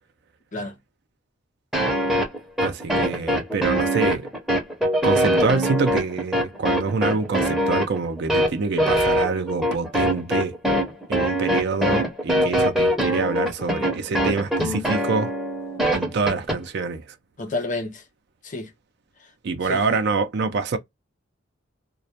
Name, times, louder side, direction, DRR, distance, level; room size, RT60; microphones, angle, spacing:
sound 1, 1.7-16.6, equal, ahead, 0.6 m, -22 dB
voice 1, 2.6-4.3 5.0-10.5 11.1-15.3 15.9-17.1 19.4-20.8, right 4 dB, 60° right, 0.4 m, -26 dB
voice 2, 17.4-18.0 18.4-18.7 19.2-19.3 19.6-20.1, left 2 dB, 40° left, 0.6 m, -31 dB
2.2 x 2.1 x 2.7 m
head